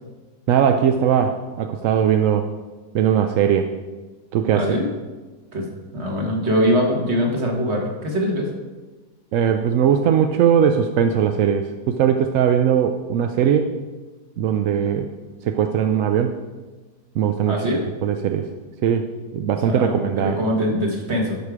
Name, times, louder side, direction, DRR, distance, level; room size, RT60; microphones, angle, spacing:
voice 1, 0.5-2.5 2.9-3.7 4.3-4.7 9.3-13.7 14.4-15.1 15.4-16.3 17.2-17.6 18.0-18.5 18.8-20.4, right 8 dB, 70° right, 6 dB, 0.8 m, -19 dB
voice 2, 4.5-4.9 5.5-5.6 5.9-8.5 17.5-17.9 19.7-21.4, equal, 40° right, 0 dB, 1.8 m, -22 dB
12.0 x 4.8 x 4.9 m, 1.3 s
omnidirectional pair, 1.7 m